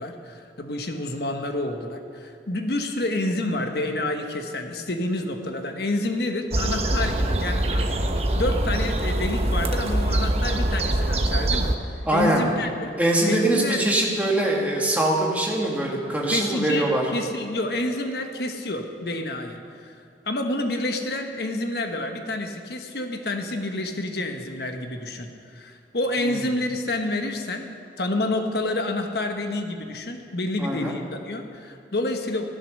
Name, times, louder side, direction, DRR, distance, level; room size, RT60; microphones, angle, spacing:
voice 1, 0.0-7.9 8.4-12.9 13.3-13.8 16.3-16.9 17.1-19.9 20.2-32.5, left 2 dB, 65° left, 5 dB, 1.2 m, -28 dB
sound 1, 6.5-11.8, right 1 dB, 35° right, 0.9 m, -23 dB
voice 2, 12.1-12.4 13.0-17.0 26.2-26.4 30.6-31.0, right 1 dB, 10° right, -2 dB, 2.0 m, -23 dB
15.0 x 12.0 x 6.5 m, 2.3 s
head